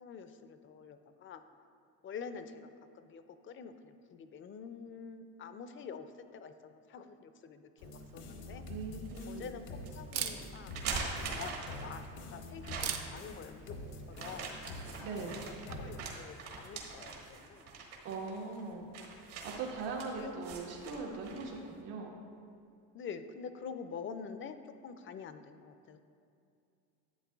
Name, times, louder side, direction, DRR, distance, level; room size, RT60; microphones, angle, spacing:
voice 1, 0.0-1.4 2.0-8.6 9.3-9.7 9.9-10.8 11.3-12.1 12.3-13.8 14.1-14.5 14.8-17.7 20.1-20.3 20.7-21.2 22.9-26.0, left 6 dB, 35° left, 10 dB, 0.4 m, -47 dB
sound 1, 7.8-16.0, left 2 dB, 85° left, 1.1 m, -47 dB
Camera, 7.8-16.1, right 8 dB, 60° right, 0.7 m, -46 dB
sound 2, 8.7-9.3 9.8-9.9 10.6-12.1 12.6-13.2 14.1-21.6, right 4 dB, 75° right, 1.5 m, -43 dB
voice 2, 8.7-9.6 15.0-15.4 18.0-18.9 19.4-22.1, right 4 dB, 90° right, -1 dB, 1.4 m, -40 dB
11.5 x 7.8 x 2.3 m, 2.5 s
cardioid pair, 120°, 40 cm